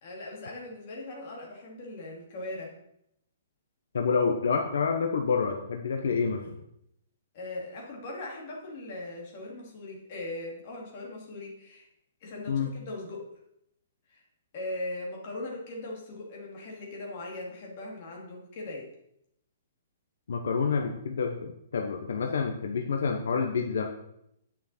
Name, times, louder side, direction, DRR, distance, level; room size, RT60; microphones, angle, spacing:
voice 1, 0.0-2.8 7.3-11.9 12.2-13.3 14.1-14.2 14.5-18.9, left 2 dB, 30° left, -1 dB, 2.2 m, -39 dB
voice 2, 3.9-6.4 12.5-12.7 20.3-23.9, left 5 dB, 70° left, 3 dB, 1.0 m, -28 dB
9.6 x 5.9 x 4.3 m, 0.77 s
hypercardioid pair, 180°, 0 cm